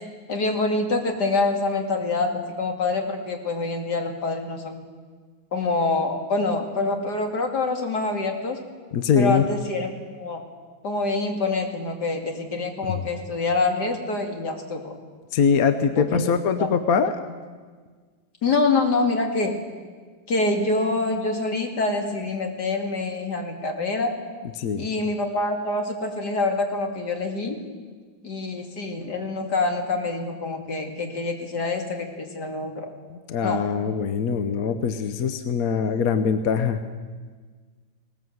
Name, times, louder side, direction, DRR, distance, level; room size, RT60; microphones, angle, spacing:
voice 1, 0.3-4.8 5.5-8.6 9.2-10.4 10.8-14.9 16.1-16.2 16.6-16.7 18.4-19.5 20.3-24.1 24.8-27.6 28.2-32.9 33.4-33.6, left 3 dB, 90° left, 3 dB, 3.0 m, -26 dB
voice 2, 8.9-9.4 12.9-13.0 15.3-17.2 24.6-24.9 28.3-28.4 33.1-36.8, left 6 dB, 65° left, 9 dB, 1.3 m, -23 dB
19.5 x 19.0 x 7.9 m, 1.5 s
omnidirectional pair, 1.7 m